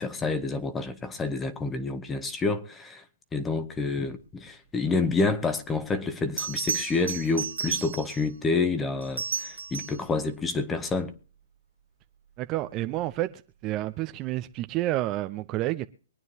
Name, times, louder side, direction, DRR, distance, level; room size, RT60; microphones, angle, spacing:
voice 1, 0.0-3.0 3.3-11.1, left 3 dB, 15° left, 1.2 m, -28 dB
Bell, 5.7-5.8 6.4-8.3 9.0-10.1 12.8-13.0, right 6 dB, 80° right, 1.7 m, -33 dB
voice 2, 12.4-13.3 13.6-15.9, right 15 dB, 30° right, 0.7 m, -29 dB
24.0 x 9.3 x 2.9 m
hypercardioid pair, 140°, 0 cm